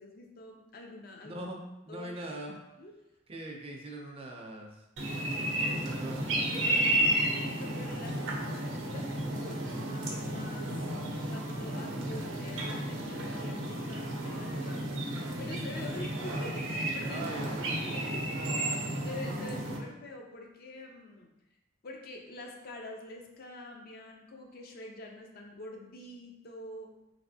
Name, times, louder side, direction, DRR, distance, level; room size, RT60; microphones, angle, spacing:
voice 1, 0.0-1.4 1.9-2.1 2.8-2.9 5.3-5.8 7.2-10.7 11.2-15.0 15.4-17.3 17.9-18.2 18.5-21.3 21.8-26.9, left 2 dB, 55° left, 1 dB, 0.5 m, -46 dB
voice 2, 1.2-2.6 3.3-4.8 5.6-6.9 15.9-16.1 17.1-18.2, right 1 dB, 30° right, 1 dB, 0.4 m, -42 dB
sound 1, 5.0-19.8, right 1 dB, 75° right, 0.6 m, -33 dB
3.3 x 2.9 x 2.7 m, 0.96 s
head